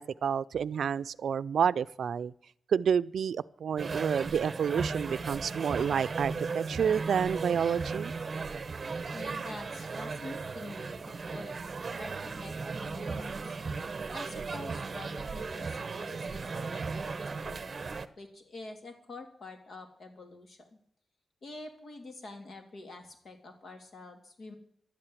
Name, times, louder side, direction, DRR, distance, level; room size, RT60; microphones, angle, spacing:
voice 1, 0.0-2.3 2.7-8.1, right 7 dB, 80° right, 0.4 m, -29 dB
sound 1, 3.8-18.1, right 4 dB, 40° right, 0.8 m, -36 dB
voice 2, 9.1-11.6 12.0-13.6 14.1-20.8 21.4-24.5, left 2 dB, 60° left, 2.8 m, -47 dB
12.0 x 8.9 x 9.7 m
wide cardioid pair, 145°, 0 cm